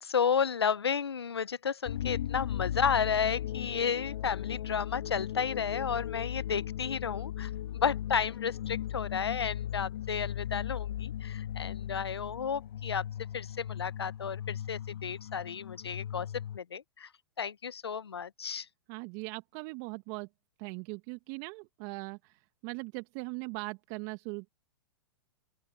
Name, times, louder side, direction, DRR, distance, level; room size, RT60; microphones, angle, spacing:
voice 1, 0.0-13.0 13.3-16.3 16.5-17.1 17.4-18.7, left 7 dB, 85° left, 0.9 m, -32 dB
sound 1, 1.9-16.6, left 11 dB, 70° left, 1.6 m, -37 dB
voice 2, 18.9-20.3 20.6-24.5, right 30 dB, 45° right, 1.5 m, -40 dB
open air
hypercardioid pair, 110°, 13 cm